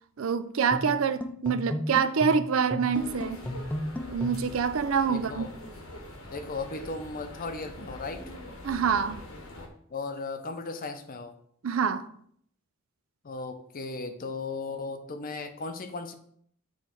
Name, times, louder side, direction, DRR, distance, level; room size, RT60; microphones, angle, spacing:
voice 1, 0.2-3.4 4.1-5.5 8.6-9.2 11.6-12.1, right 6 dB, 70° right, 0.5 m, -26 dB
sound 1, 0.7-4.6, left 1 dB, 5° left, 0.4 m, -34 dB
sound 2, 2.9-9.7, left 1 dB, 80° left, 1.3 m, -44 dB
voice 2, 5.1-5.6 6.3-8.3 9.9-11.4 13.2-16.1, left 3 dB, 45° left, 0.7 m, -36 dB
8.7 x 3.2 x 4.5 m
head